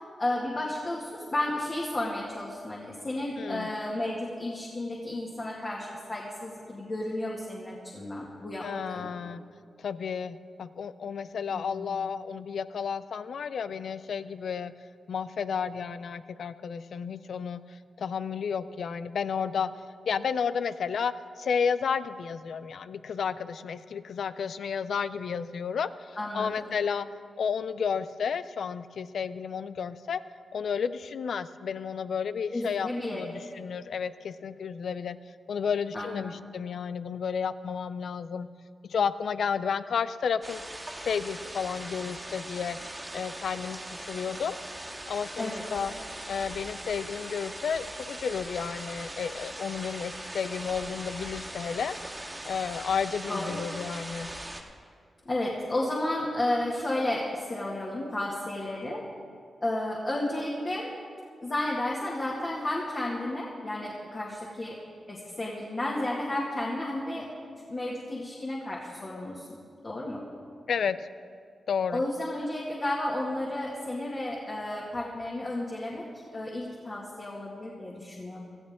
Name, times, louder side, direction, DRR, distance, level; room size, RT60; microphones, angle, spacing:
voice 1, 0.2-9.1 11.5-11.9 26.2-26.8 32.5-33.2 35.9-36.3 45.4-45.6 53.3-53.6 55.3-59.0 59.6-60.9 61.4-64.8 65.1-67.2 67.7-69.5 69.8-70.2 71.9-76.0 76.3-78.4, left 1 dB, 40° left, -4 dB, 2.1 m, -32 dB
voice 2, 3.4-3.7 8.6-9.4 9.8-14.7 15.1-19.7 20.1-27.1 27.4-30.2 30.5-35.2 35.5-38.5 38.9-42.8 43.1-44.6 45.1-45.9 46.3-52.0 52.5-54.3 70.7-71.1 71.7-72.0, left 6 dB, 75° left, 14 dB, 0.4 m, -32 dB
sound 1, 40.4-54.6, right 1 dB, 15° right, 1.7 m, -40 dB
18.0 x 13.5 x 3.7 m, 2.3 s
cardioid pair, 60°, 0 cm